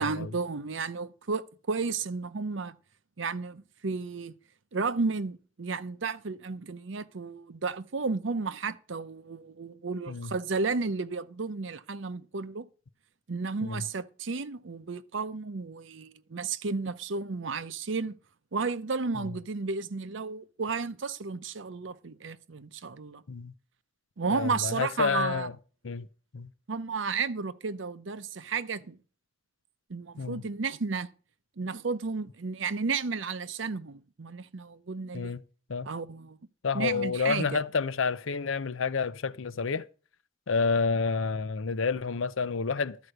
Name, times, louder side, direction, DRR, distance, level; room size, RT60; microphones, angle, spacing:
voice 1, 0.0-2.8 3.2-4.3 4.7-12.7 13.3-18.2 18.5-23.2 24.2-25.5 26.7-29.0 29.9-31.1 31.6-35.4 35.8-36.4 36.7-37.6, right 4 dB, 70° right, 0.7 m, -33 dB
voice 2, 24.3-25.5 25.8-26.1 26.3-26.5 30.2-30.4 35.1-35.4 35.7-35.9 36.6-39.9 40.5-43.0, left 5 dB, 85° left, 0.6 m, -29 dB
12.5 x 4.9 x 7.9 m
head